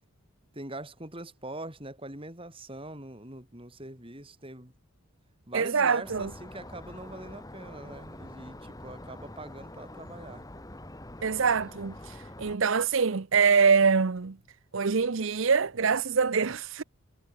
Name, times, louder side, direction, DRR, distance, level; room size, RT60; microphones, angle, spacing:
voice 1, 0.5-4.7 5.5-10.5, right 1 dB, 25° right, 5.9 m, -43 dB
voice 2, 5.5-6.3 11.2-14.4 14.7-16.8, right 5 dB, 65° right, 0.7 m, -24 dB
sound 1, 6.0-12.6, left 1 dB, 15° left, 2.0 m, -45 dB
head